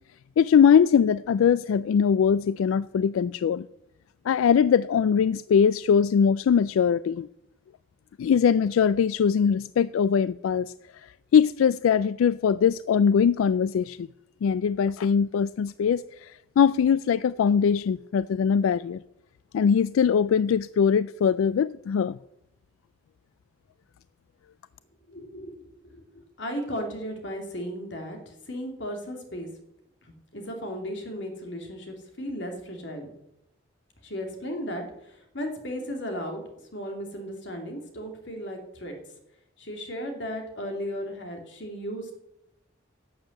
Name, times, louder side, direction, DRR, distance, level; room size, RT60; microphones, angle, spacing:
voice 1, 0.4-3.7 4.3-7.3 8.2-10.7 11.0-14.1 14.4-19.0 19.5-22.2, left 7 dB, 90° left, 0.3 m, -22 dB
voice 2, 25.1-29.5 30.0-33.1 34.0-36.4 36.7-38.9 39.6-42.2, equal, 60° left, 2.6 m, -35 dB
11.5 x 7.3 x 7.9 m
head